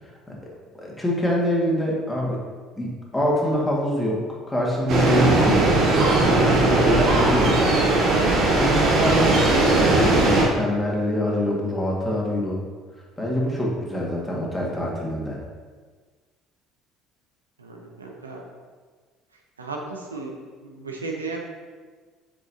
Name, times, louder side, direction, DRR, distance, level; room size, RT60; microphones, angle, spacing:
voice 1, 0.8-2.4 2.8-4.2 4.5-7.7 8.6-12.6 13.2-15.4, equal, 10° left, -3 dB, 1.8 m, -25 dB
sound 1, 4.9-10.4, right 2 dB, 55° right, 1.5 m, -19 dB
voice 2, 17.6-18.4 19.6-20.4 20.6-21.4, right 3 dB, 90° right, 1 dB, 0.7 m, -34 dB
7.2 x 5.1 x 2.8 m, 1.5 s
figure-of-eight pair, 60°, 0 cm